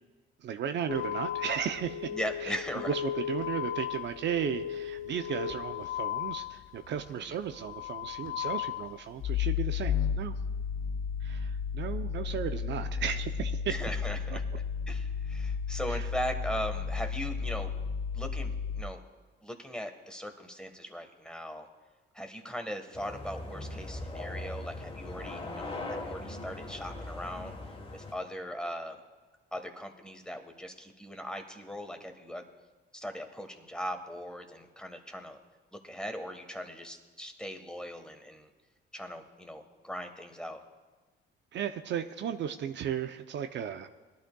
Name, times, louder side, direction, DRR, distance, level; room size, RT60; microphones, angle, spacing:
voice 1, 0.4-2.1 2.4-10.3 11.2-13.7 14.3-14.4 15.9-16.1 41.5-43.9, right 8 dB, 65° right, 8 dB, 0.6 m, -35 dB
sound 1, 0.9-7.2 7.4-18.8, left 7 dB, 80° left, 0.5 m, -34 dB
voice 2, 2.1-2.9 7.1-7.4 13.7-14.4 14.9-17.7 18.1-19.0 19.4-21.7 22.1-27.5 27.9-29.0 29.5-32.4 32.9-35.4 35.8-38.5 38.9-40.6, equal, 5° left, 5 dB, 1.4 m, -39 dB
sound 2, 22.9-28.1, left 2 dB, 25° left, 1.3 m, -40 dB
20.5 x 11.5 x 2.3 m, 1.3 s
cardioid pair, 90°, 20 cm